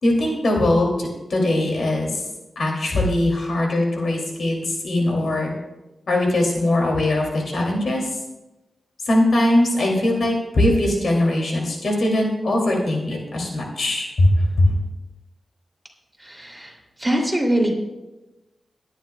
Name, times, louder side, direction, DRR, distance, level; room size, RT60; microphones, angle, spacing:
voice 1, 0.0-2.1 2.6-5.5 6.1-8.0 9.1-14.7, left 1 dB, 70° left, -1 dB, 2.8 m, -20 dB
voice 2, 16.2-17.8, right 1 dB, 10° right, -1 dB, 2.9 m, -23 dB
21.5 x 10.5 x 2.3 m, 1.0 s
wide cardioid pair, 80°, 0 cm